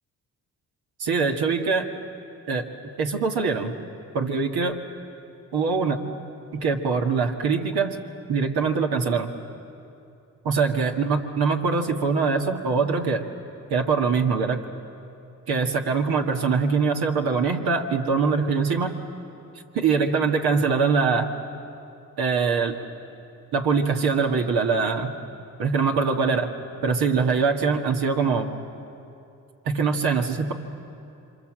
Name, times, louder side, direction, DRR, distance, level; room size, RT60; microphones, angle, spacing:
voice 1, 1.0-1.9 2.5-2.6 3.0-3.7 4.1-4.8 5.5-6.0 6.5-8.0 8.3-9.3 10.4-13.3 13.7-14.6 15.5-18.9 19.7-21.3 22.2-22.8 23.5-25.1 25.6-26.5 26.8-28.5 29.7-30.5, right 5 dB, 75° right, 1 dB, 2.0 m, -23 dB
28.5 x 25.5 x 7.6 m, 2.7 s
supercardioid pair, 60°, 38 cm